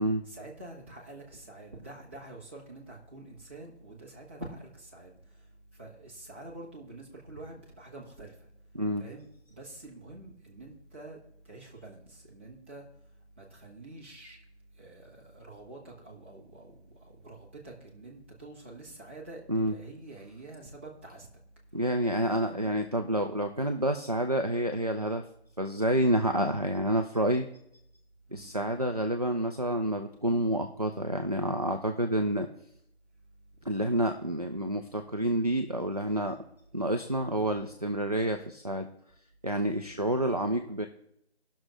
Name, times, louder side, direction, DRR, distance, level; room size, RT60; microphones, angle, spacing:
voice 1, 0.3-5.1 5.8-8.3 9.0-11.2 11.5-12.8 13.4-14.4 14.8-16.7 17.2-21.3 22.4-22.7 28.3-28.5, right 2 dB, 10° right, -7 dB, 1.0 m, -47 dB
voice 2, 21.7-25.2 25.6-27.5 28.3-32.5 33.6-36.4 36.7-38.9 39.4-40.9, right 1 dB, 35° right, 5 dB, 0.5 m, -28 dB
17.5 x 6.2 x 3.2 m, 0.74 s
figure-of-eight pair, 160°, 34 cm